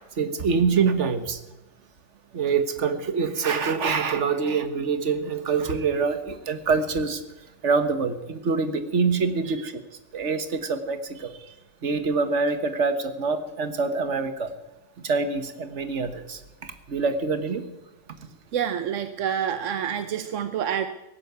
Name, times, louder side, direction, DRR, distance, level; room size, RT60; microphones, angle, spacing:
voice 1, 0.2-1.4 2.3-7.2 7.6-9.8 10.1-11.4 11.8-14.5 15.0-17.7, right 5 dB, 70° right, 10 dB, 1.7 m, -25 dB
voice 2, 18.5-20.9, right 9 dB, 90° right, 10 dB, 1.2 m, -28 dB
17.5 x 10.5 x 8.1 m, 0.98 s
omnidirectional pair, 1.2 m